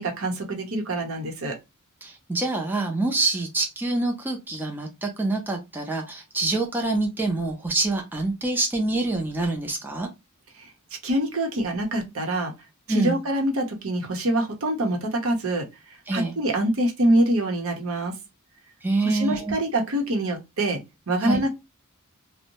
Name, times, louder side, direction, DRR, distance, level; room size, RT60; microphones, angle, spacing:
voice 1, 0.0-1.6 10.6-10.7 11.0-12.5 12.9-15.7 16.1-18.1 19.0-20.8 21.1-21.5, right 1 dB, 70° right, 0.8 m, -25 dB
voice 2, 2.0-10.1 12.9-13.2 16.1-16.4 18.8-19.6 21.2-21.4, right 2 dB, 10° right, 0.4 m, -26 dB
2.6 x 2.1 x 2.8 m
head